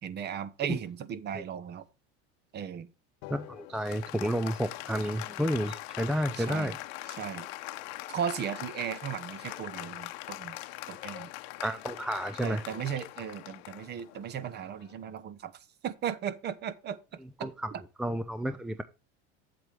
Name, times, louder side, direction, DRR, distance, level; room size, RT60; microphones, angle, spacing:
voice 1, 0.0-1.8 2.5-2.9 6.3-6.7 7.1-7.5 8.1-10.6 10.9-11.3 12.4-15.5 15.8-17.0 17.4-17.8, right 8 dB, 30° right, 0.8 m, -36 dB
Applause, 3.2-15.1, left 18 dB, 75° left, 0.9 m, -42 dB
voice 2, 3.3-6.8 11.6-12.6 13.0-13.1 17.4-17.7 18.0-18.8, equal, ahead, 0.3 m, -31 dB
7.8 x 7.7 x 3.4 m
supercardioid pair, 130°, 32 cm